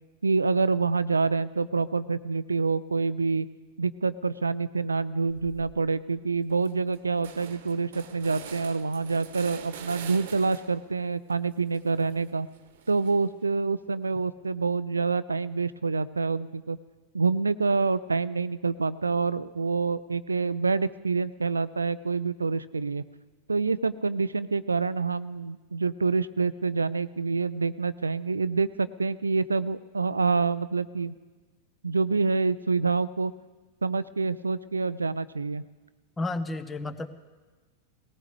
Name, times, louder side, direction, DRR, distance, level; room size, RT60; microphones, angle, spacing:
voice 1, 0.2-3.5 3.8-12.5 12.9-16.8 17.1-23.0 23.5-31.1 31.8-33.3 33.8-35.6, right 4 dB, 75° right, 17 dB, 0.4 m, -27 dB
sound 1, 5.3-5.8 6.2-6.3 6.5-10.9 11.3-13.4, right 8 dB, 55° right, 1.1 m, -45 dB
voice 2, 36.2-37.1, left 2 dB, 15° left, 12 dB, 1.0 m, -31 dB
19.5 x 18.0 x 3.4 m, 1.3 s
figure-of-eight pair, 90°, 0 cm